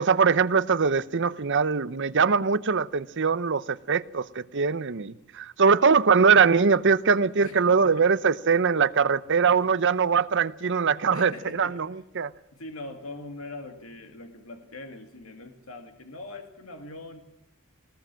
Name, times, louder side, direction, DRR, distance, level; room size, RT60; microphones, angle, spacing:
voice 1, 0.0-12.3, right 5 dB, 55° right, 0.8 m, -22 dB
voice 2, 7.4-8.1 9.5-9.8 11.1-12.0 12.5-17.2, left 2 dB, 65° left, 2.2 m, -42 dB
21.0 x 19.5 x 7.6 m
head